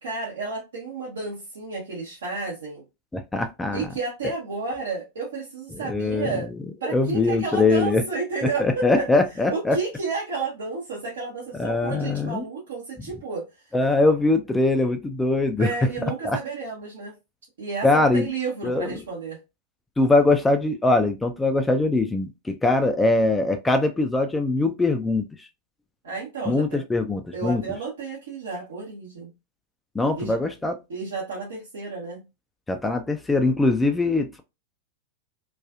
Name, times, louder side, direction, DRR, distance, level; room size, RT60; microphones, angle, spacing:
voice 1, 0.0-2.8 3.7-6.5 6.8-9.1 9.5-13.4 15.6-17.1 17.6-19.4 26.0-26.8 27.3-29.3 30.1-30.4 30.9-32.2, right 4 dB, 65° right, 0.8 m, -31 dB
voice 2, 3.1-3.9 5.9-6.4 6.9-8.0 8.6-9.8 11.6-12.4 13.7-15.7 16.0-16.4 17.8-18.3 18.6-18.9 20.0-25.2 26.5-27.6 30.0-30.8 32.7-34.4, left 2 dB, 10° left, 0.3 m, -22 dB
2.4 x 2.3 x 2.3 m
figure-of-eight pair, 90°, 0 cm